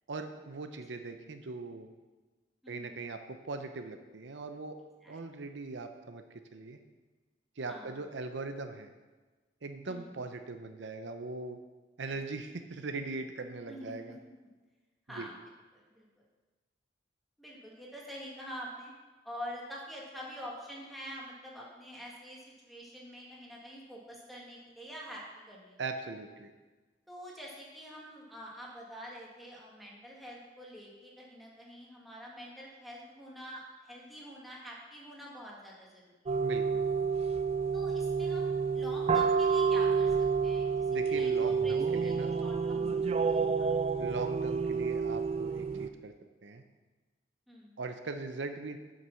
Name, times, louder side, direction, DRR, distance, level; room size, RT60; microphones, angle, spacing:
voice 1, 0.1-1.9 2.7-4.8 5.1-6.8 7.6-8.9 9.6-11.6 12.0-14.2 15.1-15.3 25.8-26.5 36.4-36.8 40.9-42.3 44.0-46.1 46.4-46.6 47.8-48.8, right 3 dB, 80° right, 7 dB, 0.7 m, -40 dB
voice 2, 2.6-3.1 5.0-5.2 7.7-7.9 9.9-10.2 12.0-12.2 13.7-14.1 15.1-15.3 15.7-16.1 17.4-18.9 19.2-25.8 27.1-36.4 37.7-38.5 38.7-40.7 41.1-41.8 42.0-43.7 47.5-47.8, equal, ahead, -4 dB, 1.8 m, -46 dB
sound 1, 36.3-45.9, right 5 dB, 35° right, 0.4 m, -29 dB
7.7 x 6.6 x 5.6 m, 1.3 s
head